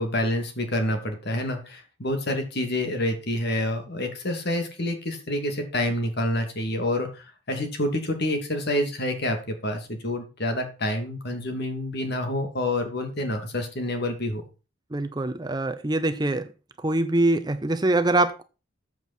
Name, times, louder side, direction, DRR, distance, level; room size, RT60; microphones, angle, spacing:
voice 1, 0.0-9.4 9.6-14.4, left 1 dB, 50° left, 5 dB, 2.8 m, -28 dB
voice 2, 14.9-16.5 16.8-18.4, right 2 dB, 20° right, 9 dB, 0.7 m, -24 dB
14.0 x 7.4 x 4.5 m, 0.32 s
head